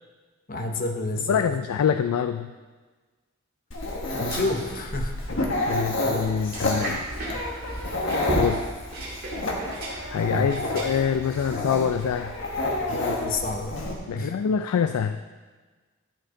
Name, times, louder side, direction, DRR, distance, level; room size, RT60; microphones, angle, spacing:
voice 1, 0.5-1.6 4.2-5.2 5.7-6.0 10.3-10.6 12.9-13.8 14.1-14.4, left 2 dB, 40° left, 4 dB, 0.8 m, -30 dB
voice 2, 1.3-2.5 5.7-7.0 8.4-8.6 10.1-12.3 14.1-15.2, left 7 dB, 85° left, 8 dB, 0.3 m, -25 dB
Dog, 3.7-13.9, left 2 dB, 55° left, 1.3 m, -30 dB
sound 1, 4.1-12.8, right 1 dB, 40° right, 2.3 m, -35 dB
12.0 x 6.4 x 3.8 m, 1.3 s
head